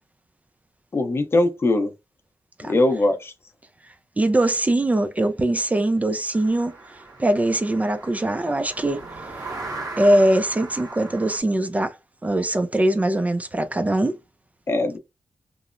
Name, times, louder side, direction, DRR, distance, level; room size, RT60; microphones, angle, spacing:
voice 1, 0.9-1.9 2.6-3.3 14.7-15.0, left 2 dB, 40° left, 0.6 m, -21 dB
voice 2, 4.2-6.7 7.2-9.0 10.0-11.9 12.2-14.2, right 1 dB, 20° right, 0.4 m, -21 dB
sound 1, 6.3-11.4, right 3 dB, 80° right, 1.2 m, -38 dB
3.0 x 2.0 x 2.4 m
wide cardioid pair, 90°, 7 cm